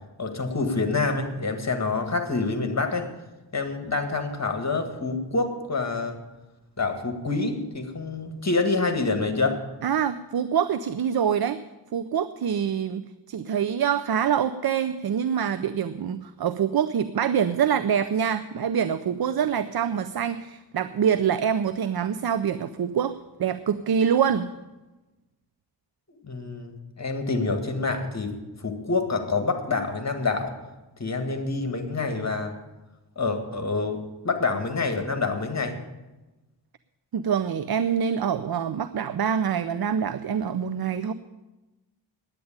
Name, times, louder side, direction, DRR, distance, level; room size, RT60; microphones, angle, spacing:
voice 1, 0.2-3.1 3.5-6.2 6.8-9.6 26.1-28.3 28.6-30.5 31.0-32.5 33.2-34.0 34.2-35.8, left 3 dB, 40° left, 6 dB, 2.0 m, -27 dB
voice 2, 9.8-11.6 11.9-24.5 37.1-41.1, right 8 dB, 60° right, 12 dB, 0.6 m, -25 dB
10.5 x 9.3 x 8.7 m, 1.1 s
wide cardioid pair, 80°, 44 cm